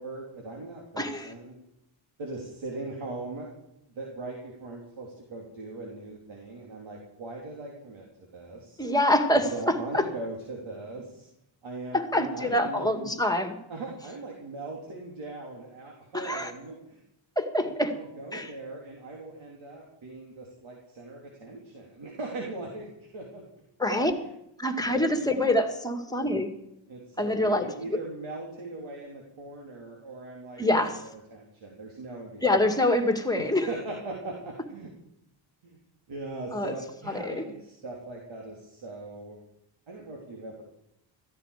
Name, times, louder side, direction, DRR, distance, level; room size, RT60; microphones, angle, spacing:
voice 1, 0.0-1.6 2.2-3.5 3.9-8.1 8.3-8.9 9.3-11.3 11.6-13.1 13.7-17.0 17.6-23.4 26.9-30.6 30.9-32.4 33.4-34.9 35.6-35.8 36.1-39.4 39.9-40.6, right 2 dB, 75° right, -1 dB, 3.4 m, -40 dB
voice 2, 1.0-1.3 8.8-10.1 11.9-13.5 16.1-16.5 17.4-18.0 18.3-18.5 23.8-24.1 24.6-26.5 27.2-28.0 30.6-31.0 32.4-33.7 36.5-36.7 37.1-37.5, left 1 dB, 10° left, 7 dB, 2.0 m, -26 dB
16.0 x 14.5 x 5.1 m, 0.83 s
cardioid pair, 90°, 47 cm